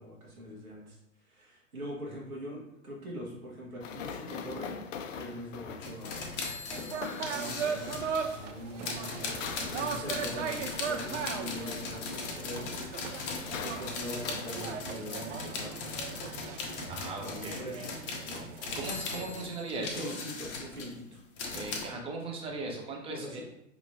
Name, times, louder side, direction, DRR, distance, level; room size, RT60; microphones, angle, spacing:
voice 1, 0.0-4.8 5.1-6.3 7.3-9.4 9.7-12.7 13.6-16.1 17.2-18.0 18.2-21.2 23.1-23.4, equal, 90° right, -3 dB, 1.5 m, -43 dB
sound 1, 3.8-17.1, left 7 dB, 65° left, 0.5 m, -44 dB
sound 2, 5.8-8.2 8.8-21.9, left 4 dB, 30° left, 0.7 m, -39 dB
sound 3, 6.7-19.5, right 6 dB, 60° right, 0.5 m, -39 dB
voice 2, 16.9-17.9 18.7-20.1 21.5-23.4, right 2 dB, 15° right, -1 dB, 0.7 m, -38 dB
5.3 x 2.9 x 2.7 m, 0.83 s
figure-of-eight pair, 105°, 42 cm